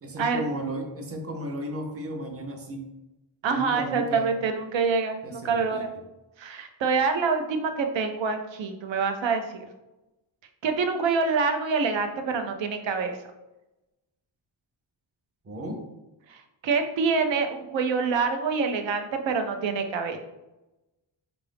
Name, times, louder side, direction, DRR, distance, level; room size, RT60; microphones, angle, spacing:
voice 1, 0.0-2.9 3.4-4.3 5.2-6.0 15.4-15.9, right 1 dB, 30° right, 4 dB, 0.7 m, -34 dB
voice 2, 3.4-5.9 6.4-9.7 10.6-13.2 16.3-20.2, right 5 dB, 70° right, 6 dB, 0.7 m, -26 dB
4.7 x 2.5 x 3.4 m, 0.98 s
wide cardioid pair, 120°, 47 cm